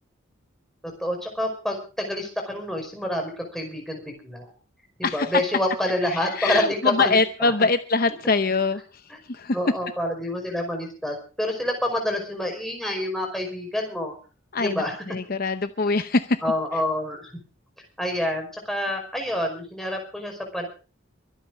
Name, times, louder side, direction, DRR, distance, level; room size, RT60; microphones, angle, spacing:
voice 1, 0.8-4.5 5.1-7.5 9.5-14.1 14.6-15.0 16.4-17.3 18.0-20.7, left 1 dB, ahead, 1 dB, 5.3 m, -28 dB
voice 2, 5.0-5.4 6.1-8.8 9.3-9.6 14.5-16.4, left 3 dB, 45° left, 10 dB, 0.8 m, -23 dB
24.0 x 8.9 x 5.0 m, 0.36 s
head